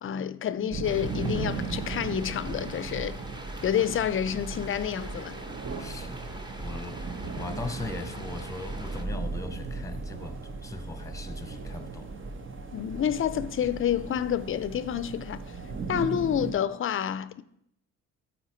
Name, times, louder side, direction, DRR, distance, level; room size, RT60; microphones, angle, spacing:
voice 1, 0.0-3.2 3.6-5.4 12.7-15.4 15.9-17.4, left 9 dB, 45° left, 0.5 m, -29 dB
sound 1, 0.7-16.5, right 4 dB, 40° right, 1.1 m, -37 dB
sound 2, 0.8-9.0, equal, 15° right, 0.9 m, -45 dB
voice 2, 5.8-6.2 6.6-12.1, left 2 dB, 10° left, 1.0 m, -39 dB
13.0 x 4.4 x 4.4 m
cardioid pair, 90°, 30 cm